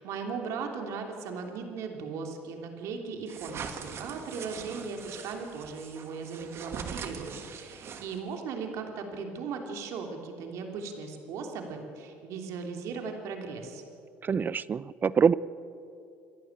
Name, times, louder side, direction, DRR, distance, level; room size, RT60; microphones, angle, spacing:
voice 1, 0.0-13.8, right 5 dB, 70° right, 4 dB, 3.2 m, -37 dB
sound 1, 3.3-8.4, right 6 dB, 55° right, 2.2 m, -42 dB
voice 2, 14.2-15.3, right 6 dB, 35° right, 19 dB, 0.6 m, -25 dB
28.5 x 11.5 x 9.0 m, 2.6 s
supercardioid pair, 85°, 5 cm